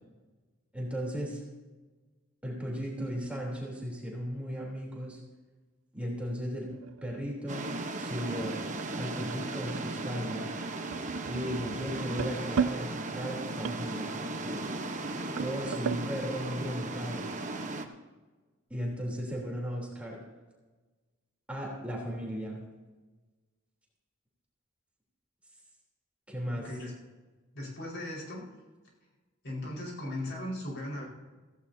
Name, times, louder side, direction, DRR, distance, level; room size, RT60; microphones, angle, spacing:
voice 1, 0.7-1.4 2.4-5.2 5.9-6.7 7.0-7.7 8.0-8.6 8.9-10.5 11.3-14.6 15.4-17.3 18.7-20.2 21.5-22.6 26.3-26.7, equal, 5° right, -3 dB, 3.5 m, -36 dB
sound 1, 6.3-16.1, right 7 dB, 85° right, 0.4 m, -38 dB
sound 2, 7.5-17.8, right 2 dB, 40° right, 1.1 m, -36 dB
voice 2, 27.5-28.5 29.4-31.0, left 1 dB, 60° left, -3 dB, 5.0 m, -37 dB
16.5 x 16.0 x 2.8 m, 1.3 s
head